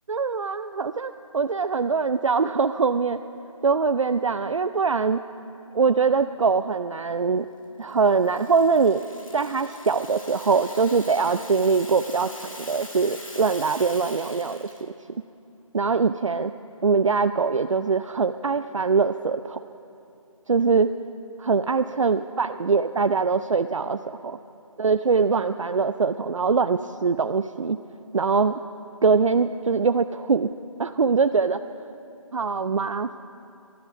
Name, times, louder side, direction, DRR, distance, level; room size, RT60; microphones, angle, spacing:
voice 1, 0.1-3.2 3.6-5.2 5.7-7.5 7.8-9.0 9.3-14.9 15.7-16.5 16.8-19.6 20.5-20.9 21.4-24.0 24.2-24.4 24.8-27.8 28.1-28.6 29.0-30.5 30.8-31.6 32.3-33.2, right 5 dB, 60° right, 10 dB, 0.5 m, -23 dB
Rattle (instrument), 7.9-14.8, left 2 dB, 70° left, 2.5 m, -43 dB
19.0 x 12.0 x 5.7 m, 2.7 s
figure-of-eight pair, 165°, 18 cm